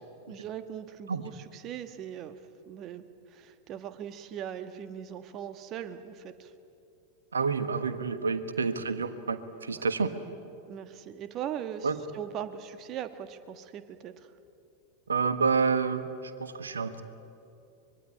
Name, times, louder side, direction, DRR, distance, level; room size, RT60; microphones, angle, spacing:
voice 1, 0.3-2.4 2.7-6.5 8.3-8.4 9.8-9.9 10.7-14.3, right 9 dB, 35° right, 11 dB, 1.4 m, -40 dB
voice 2, 7.3-10.1 11.8-12.0 15.1-16.1 16.4-17.0, right 5 dB, 70° right, 12 dB, 1.3 m, -28 dB
24.5 x 22.0 x 9.9 m, 2.8 s
figure-of-eight pair, 90°, 0 cm